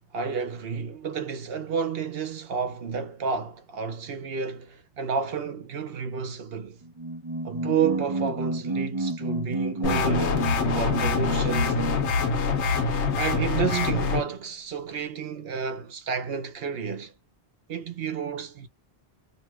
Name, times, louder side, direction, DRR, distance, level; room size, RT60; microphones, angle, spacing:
voice 1, 0.1-6.8 7.4-10.5 10.8-11.8 13.2-17.1 17.7-18.7, right 6 dB, 65° right, 0.9 m, -31 dB
sound 1, 6.8-12.1, right 2 dB, 25° right, 0.7 m, -30 dB
sound 2, 9.8-14.2, left 4 dB, 85° left, 1.1 m, -25 dB
2.8 x 2.2 x 3.0 m
omnidirectional pair, 1.1 m